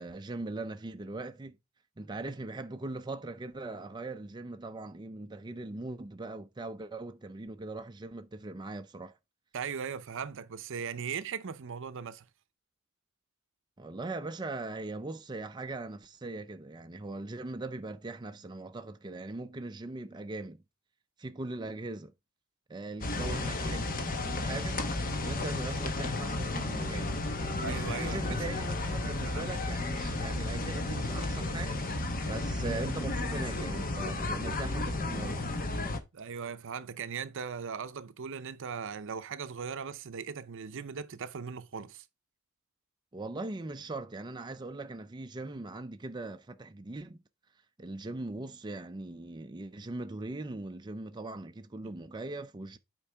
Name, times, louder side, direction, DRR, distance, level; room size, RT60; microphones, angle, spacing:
voice 1, 0.0-1.6 2.0-9.1 13.8-20.6 21.2-22.1 22.7-24.8 25.2-27.1 27.8-31.9 32.2-35.4 43.1-47.2 47.8-52.8, right 2 dB, 20° right, 0.5 m, -40 dB
voice 2, 9.5-12.2 27.6-28.4 29.0-29.5 36.1-42.0 51.8-51.9, right 6 dB, 65° right, 0.6 m, -39 dB
sound 1, 23.0-36.0, left 2 dB, 40° left, 1.0 m, -33 dB
8.5 x 4.6 x 3.4 m
head